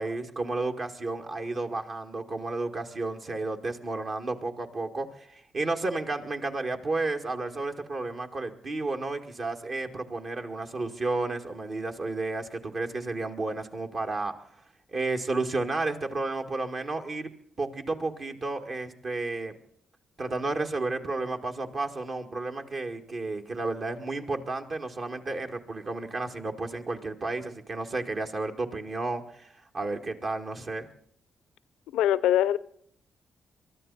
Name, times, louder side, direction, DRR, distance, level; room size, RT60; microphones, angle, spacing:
voice 1, 0.0-14.3 14.9-17.3 17.6-19.5 20.2-30.9, right 3 dB, 55° right, 2.0 m, -32 dB
voice 2, 31.9-32.6, left 12 dB, 90° left, 0.5 m, -22 dB
23.5 x 13.0 x 4.1 m
supercardioid pair, 55°, 0 cm